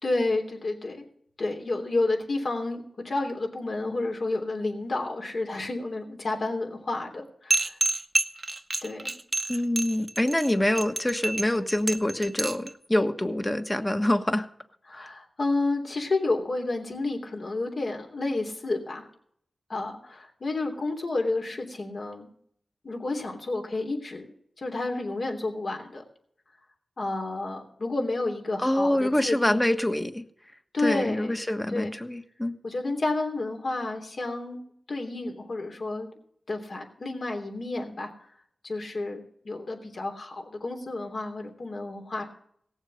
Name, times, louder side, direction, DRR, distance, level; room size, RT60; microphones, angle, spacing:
voice 1, 0.0-1.0 1.4-7.8 8.8-9.1 14.9-19.1 19.7-22.3 22.8-24.2 24.6-26.0 27.0-29.6 30.7-31.4 31.7-31.9 32.6-34.6 34.9-36.1 36.5-38.1 38.6-42.2, left 2 dB, 65° left, 2 dB, 3.2 m, -30 dB
sound 1, 7.5-12.7, right 2 dB, 40° right, 1.0 m, -28 dB
voice 2, 9.5-14.5 14.9-15.1 28.6-30.2 30.8-32.6, left 1 dB, 20° left, 8 dB, 1.3 m, -26 dB
17.5 x 7.3 x 6.5 m, 0.65 s
cardioid pair, 45°, 0 cm